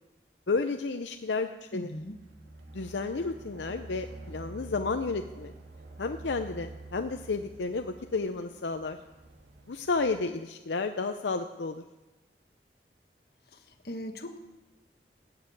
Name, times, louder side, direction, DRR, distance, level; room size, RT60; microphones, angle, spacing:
voice 1, 0.5-1.9 2.7-5.5 6.0-9.0 9.7-11.8, left 4 dB, 85° left, 7 dB, 0.6 m, -32 dB
voice 2, 1.7-2.1 13.8-14.4, left 1 dB, 65° left, 6 dB, 1.4 m, -38 dB
sound 1, 1.9-10.2, right 2 dB, 80° right, 2.0 m, -47 dB
18.5 x 6.8 x 8.5 m, 1.1 s
head